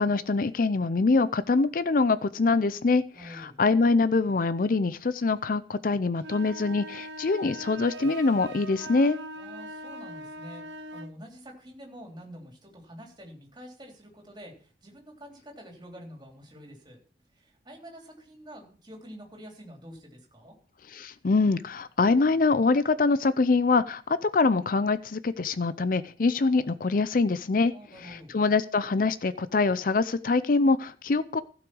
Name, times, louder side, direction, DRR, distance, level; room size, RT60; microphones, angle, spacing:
voice 1, 0.0-9.2 20.9-27.7 28.0-31.4, left 3 dB, 50° left, 15 dB, 0.5 m, -24 dB
voice 2, 3.1-3.6 9.4-17.0 17.3-20.5 27.7-28.3, equal, 25° right, 1 dB, 3.4 m, -47 dB
sound 1, 6.2-11.1, right 1 dB, 80° right, 1.1 m, -41 dB
15.5 x 5.9 x 6.2 m, 0.42 s
head